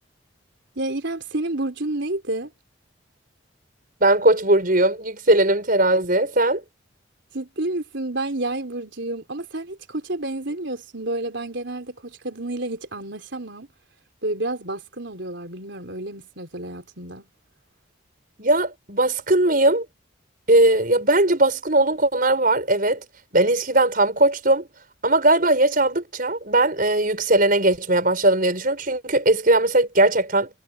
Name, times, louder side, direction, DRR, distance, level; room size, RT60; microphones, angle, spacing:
voice 1, 0.8-2.5 7.3-13.7 14.2-17.3, right 2 dB, 60° right, 4.1 m, -30 dB
voice 2, 4.0-6.6 18.4-19.9 20.5-23.0 23.3-24.7 25.0-30.5, right 2 dB, 45° right, 5.6 m, -19 dB
head